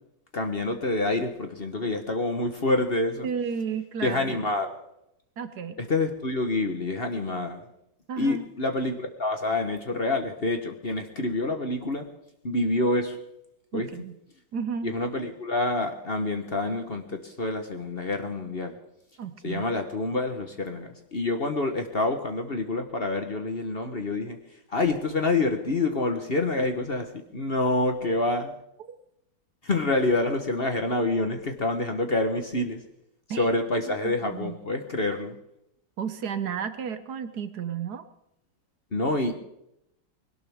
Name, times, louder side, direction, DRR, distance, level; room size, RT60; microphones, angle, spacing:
voice 1, 0.3-3.3 4.0-4.7 5.8-7.6 8.2-12.1 12.4-13.2 13.7-13.9 14.8-18.8 19.4-24.4 24.7-28.5 29.6-32.8 33.4-35.3 38.9-39.3, left 2 dB, 35° left, 6 dB, 1.2 m, -27 dB
voice 2, 3.2-4.4 5.4-5.8 8.1-8.5 13.7-14.2 14.5-14.9 19.2-19.7 28.9-29.0 33.3-33.4 33.9-34.6 36.0-38.1, right 7 dB, 65° right, 11 dB, 1.3 m, -33 dB
21.0 x 18.0 x 3.6 m, 0.81 s
omnidirectional pair, 2.0 m